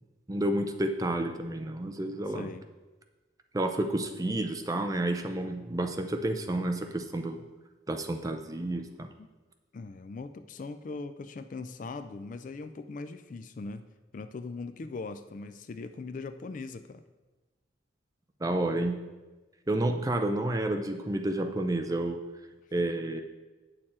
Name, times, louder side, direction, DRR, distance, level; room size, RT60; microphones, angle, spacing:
voice 1, 0.3-2.5 3.5-7.4 7.9-9.1 18.4-19.0 19.7-22.2 22.7-23.2, right 1 dB, 20° right, 5 dB, 0.5 m, -30 dB
voice 2, 2.3-2.6 9.2-9.3 9.7-13.9 14.1-17.0, left 3 dB, 40° left, 10 dB, 0.3 m, -40 dB
8.7 x 6.6 x 4.3 m, 1.2 s
head